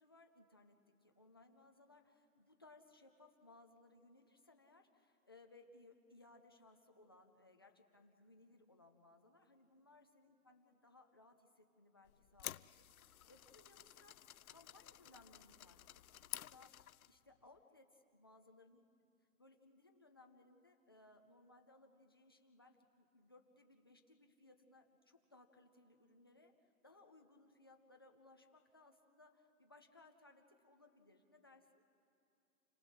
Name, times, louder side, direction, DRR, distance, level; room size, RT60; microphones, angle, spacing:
voice 1, 0.0-12.7 13.0-15.8 16.2-18.8 19.4-31.8, left 2 dB, 15° left, 4 dB, 0.4 m, -65 dB
sound 1, 12.1-17.2, left 11 dB, 70° left, 0.6 m, -52 dB
30.0 x 18.5 x 6.3 m, 2.7 s
hypercardioid pair, 160°, 45 cm